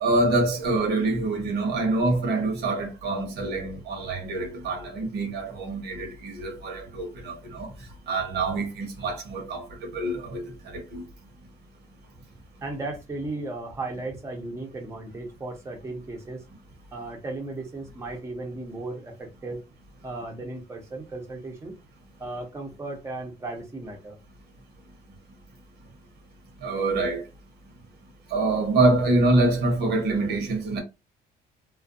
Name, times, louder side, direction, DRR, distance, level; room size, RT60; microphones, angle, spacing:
voice 1, 0.0-7.7 8.1-11.0 26.6-27.2 28.3-30.8, right 2 dB, 80° right, 1.0 m, -25 dB
voice 2, 12.6-16.4 16.9-19.6 20.0-21.7 22.2-24.2, right 2 dB, 15° right, 0.7 m, -35 dB
2.4 x 2.2 x 2.5 m
cardioid pair, 110°, 17 cm